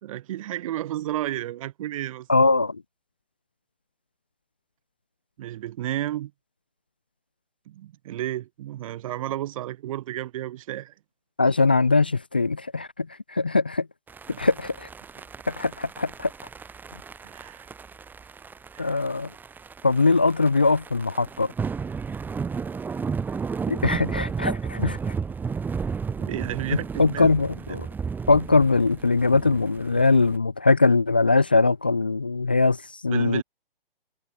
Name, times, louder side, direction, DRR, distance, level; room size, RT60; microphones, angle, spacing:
voice 1, 0.0-2.3 5.4-6.3 7.7-10.9 14.3-14.4 17.2-17.7 18.7-19.0 26.1-27.3 27.7-27.8 33.1-33.4, right 13 dB, 35° right, 4.7 m, -32 dB
voice 2, 2.3-2.8 11.4-13.9 14.4-14.9 15.6-16.3 18.8-19.3 19.8-21.5 23.7-25.0 26.7-27.9 28.3-32.8 33.0-33.4, left 3 dB, 10° left, 0.4 m, -21 dB
sound 1, 14.1-30.4, right 5 dB, 5° right, 3.3 m, -33 dB
hypercardioid pair, 160°, 29 cm